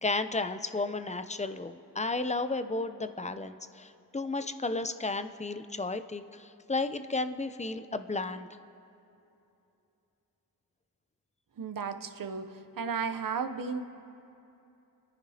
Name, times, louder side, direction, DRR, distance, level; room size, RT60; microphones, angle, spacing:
voice 1, 0.0-8.5, left 3 dB, 20° left, 10 dB, 0.5 m, -33 dB
voice 2, 11.6-13.9, right 5 dB, 65° right, 9 dB, 0.8 m, -34 dB
25.0 x 10.0 x 2.8 m, 2.8 s
cardioid pair, 55°, 37 cm